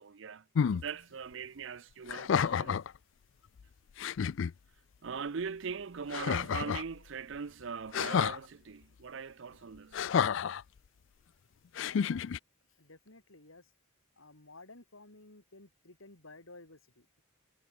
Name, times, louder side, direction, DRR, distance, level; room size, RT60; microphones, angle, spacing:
voice 1, 0.0-2.9 5.0-10.1, right 5 dB, 65° right, 0.6 m, -41 dB
sound 1, 0.5-0.8 2.1-2.9 3.6-3.7 4.0-4.5 6.1-6.9 7.9-8.4 9.9-10.6 11.7-12.4, left 7 dB, 65° left, 0.4 m, -30 dB
voice 2, 11.8-12.3 12.8-13.7 14.2-17.2, left 2 dB, 80° left, 4.7 m, -54 dB
head